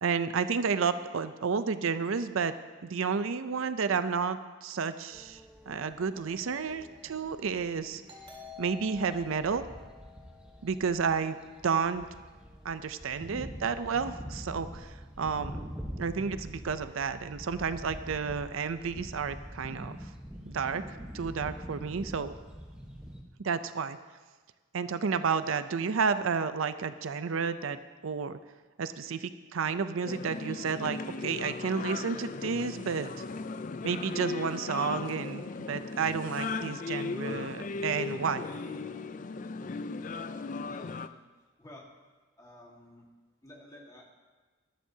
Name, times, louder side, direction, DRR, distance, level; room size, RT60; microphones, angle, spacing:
voice 1, 0.0-2.5 2.8-5.4 5.7-8.0 8.6-9.7 10.6-11.4 11.6-12.1 12.6-15.6 16.0-20.0 20.5-20.8 21.1-22.3 23.4-24.0 24.7-28.4 28.8-33.2 33.8-38.4, right 5 dB, 70° right, 12 dB, 0.5 m, -31 dB
sound 1, 5.1-23.2, equal, 5° right, 1.1 m, -45 dB
Doorbell, 8.1-11.4, left 6 dB, 25° right, 2.3 m, -50 dB
sound 2, 30.0-41.1, left 4 dB, 35° left, 0.4 m, -37 dB
voice 2, 40.6-41.2 41.6-41.9 42.4-43.1 43.4-44.1, left 1 dB, 15° left, -2 dB, 1.7 m, -52 dB
19.5 x 12.5 x 2.8 m, 1.3 s
head